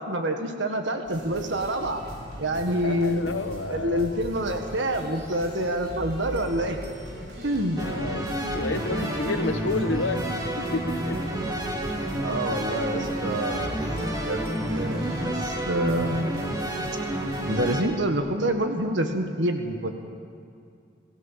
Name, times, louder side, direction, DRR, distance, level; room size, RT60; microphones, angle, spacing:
voice 1, 0.0-2.0 2.4-3.4 3.7-6.8 7.4-7.8 12.2-16.4 17.5-19.9, right 1 dB, 75° right, 5 dB, 1.6 m, -27 dB
sound 1, 1.0-17.7, equal, 55° right, 5.6 m, -40 dB
voice 2, 2.8-4.2 7.7-8.3 8.5-10.2 10.6-11.2, left 3 dB, 90° left, 10 dB, 1.1 m, -30 dB
sound 2, 7.8-17.8, right 1 dB, 20° right, 2.5 m, -30 dB
28.5 x 15.5 x 7.4 m, 2.4 s
head